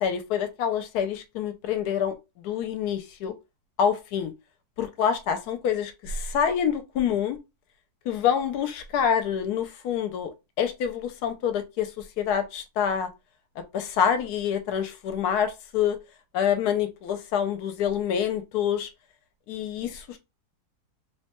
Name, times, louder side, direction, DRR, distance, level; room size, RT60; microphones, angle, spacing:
voice 1, 0.0-2.1 2.4-3.3 3.8-4.3 4.8-7.4 8.1-10.3 10.6-11.9 12.2-13.1 13.7-16.0 16.3-18.9 19.5-20.2, left 8 dB, 80° left, 1.1 m, -26 dB
3.1 x 2.2 x 2.9 m
omnidirectional pair, 1.7 m